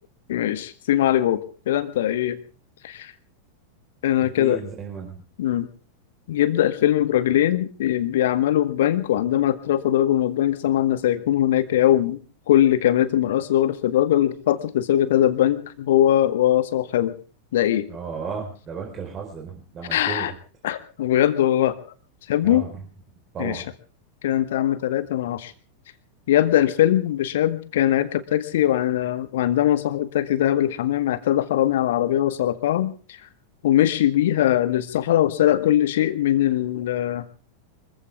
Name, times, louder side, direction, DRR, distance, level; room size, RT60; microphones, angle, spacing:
voice 1, 0.3-2.4 2.8-3.1 4.0-4.6 5.4-5.7 6.3-17.1 17.5-17.9 19.9-20.3 20.6-21.8 22.3-22.6 23.4-23.6 24.2-25.5 26.3-32.9 33.6-37.3, left 12 dB, 55° left, 13 dB, 1.7 m, -21 dB
voice 2, 4.4-5.1 17.9-20.3 22.4-22.7 23.3-23.6, right 6 dB, 25° right, 1 dB, 4.5 m, -34 dB
25.5 x 15.0 x 3.6 m, 0.38 s
figure-of-eight pair, 90°, 0 cm